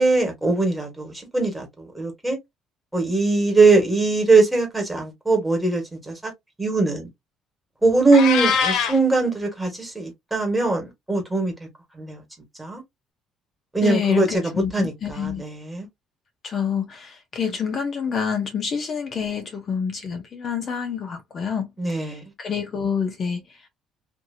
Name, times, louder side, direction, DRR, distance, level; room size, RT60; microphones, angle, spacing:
voice 1, 0.0-2.4 2.9-6.3 6.6-7.1 7.8-11.5 12.0-12.2 12.6-12.8 13.7-14.3 14.7-15.9 21.8-22.2, right 3 dB, 5° right, 1.3 m, -21 dB
Meow, 8.1-9.0, left 6 dB, 65° left, 0.9 m, -22 dB
voice 2, 13.8-15.4 16.4-23.7, left 7 dB, 40° left, 0.6 m, -27 dB
2.8 x 2.5 x 2.6 m
cardioid pair, 140°, 0 cm